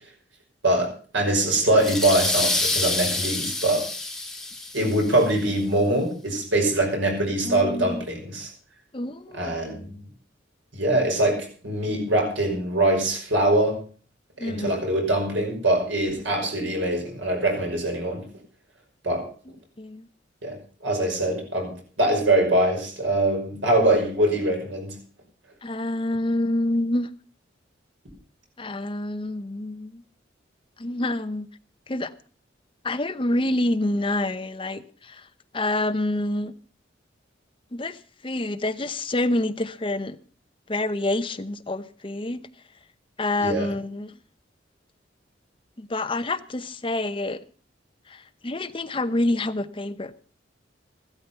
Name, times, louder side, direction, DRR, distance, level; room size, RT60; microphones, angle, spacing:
voice 1, 0.6-3.9 4.7-8.5 9.3-10.0 10.7-13.8 14.4-18.3 19.0-19.3 20.4-25.0 43.4-43.7, right 1 dB, 90° right, 5.7 m, -23 dB
sound 1, 1.8-5.2, left 2 dB, 5° left, 1.8 m, -27 dB
voice 2, 7.4-8.0 8.9-10.1 14.4-14.7 19.8-20.1 25.6-27.1 28.6-30.0 30.8-31.5 31.9-32.1 32.8-35.3 35.5-36.5 37.7-40.2 40.7-42.4 43.2-44.2 45.8-47.4 48.1-50.1, left 1 dB, 25° left, 0.8 m, -27 dB
14.0 x 12.5 x 5.7 m
head